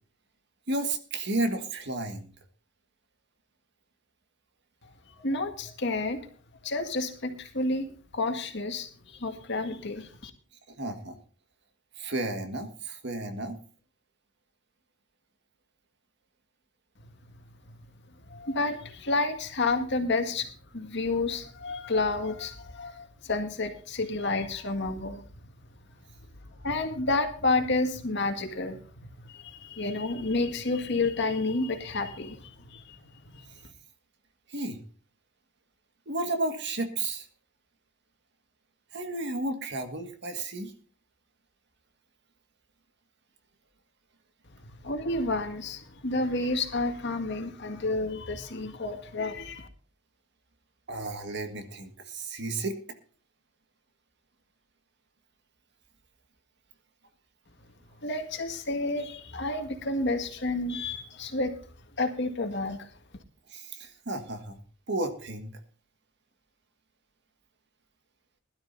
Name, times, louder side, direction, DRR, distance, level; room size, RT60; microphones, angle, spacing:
voice 1, 0.7-2.3 10.8-11.1 12.0-13.6 34.5-34.8 36.1-37.3 38.9-40.7 50.9-52.8 63.5-64.6 64.9-65.6, right 2 dB, 60° right, 7 dB, 1.7 m, -32 dB
voice 2, 5.1-6.3 6.6-7.9 8.1-10.3 18.3-25.2 26.6-33.0 33.3-33.6 44.6-49.7 58.0-61.6 62.0-62.9, left 2 dB, 60° left, 6 dB, 1.9 m, -30 dB
20.5 x 12.5 x 2.7 m, 0.40 s
head